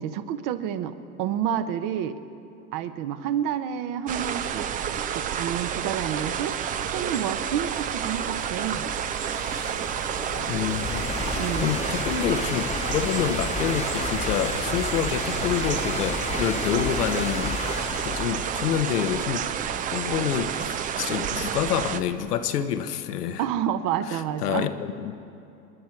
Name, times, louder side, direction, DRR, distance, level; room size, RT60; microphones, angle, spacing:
voice 1, 0.0-2.2 2.7-4.7 5.1-6.5 6.9-8.9 11.3-11.7 23.4-24.7, right 9 dB, 45° right, 11 dB, 1.0 m, -29 dB
sound 1, 4.1-22.0, right 8 dB, 20° right, 0.4 m, -30 dB
sound 2, 6.8-6.9 7.5-22.3, left 4 dB, 15° left, 1.1 m, -34 dB
voice 2, 10.4-17.6 18.0-19.5 19.9-23.4 24.1-25.2, left 9 dB, 75° left, 10 dB, 1.1 m, -28 dB
28.0 x 10.5 x 4.6 m, 2.7 s
hypercardioid pair, 100°, 47 cm